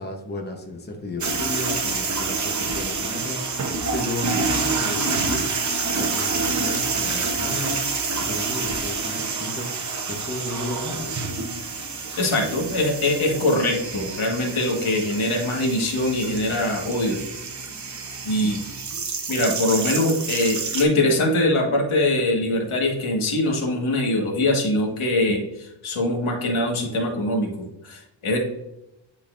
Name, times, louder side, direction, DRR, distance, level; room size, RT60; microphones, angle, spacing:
voice 1, 0.0-5.5 6.0-7.8 8.2-11.2, left 1 dB, 20° left, 2 dB, 0.9 m, -33 dB
sound 1, 1.2-20.8, right 4 dB, 35° right, 0.8 m, -28 dB
voice 2, 12.2-17.2 18.2-18.6 19.3-28.4, left 1 dB, 85° left, 0 dB, 1.6 m, -23 dB
10.0 x 4.1 x 2.5 m, 0.88 s
wide cardioid pair, 180°, 48 cm